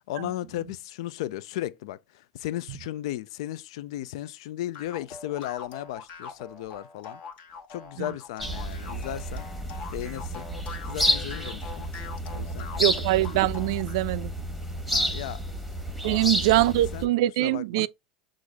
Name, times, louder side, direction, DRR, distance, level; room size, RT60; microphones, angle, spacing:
voice 1, 0.1-7.2 7.7-9.5 9.9-10.5 10.9-11.9 12.3-13.0 14.9-15.4 16.0-16.3 16.6-17.1 17.4-17.9, left 14 dB, 65° left, 0.3 m, -35 dB
sound 1, 4.7-14.0, left 5 dB, 45° left, 1.2 m, -43 dB
sound 2, 8.4-17.0, equal, ahead, 1.1 m, -30 dB
voice 2, 12.8-14.3 16.0-17.9, right 16 dB, 65° right, 0.3 m, -23 dB
6.2 x 2.5 x 3.4 m
hypercardioid pair, 95°, 3 cm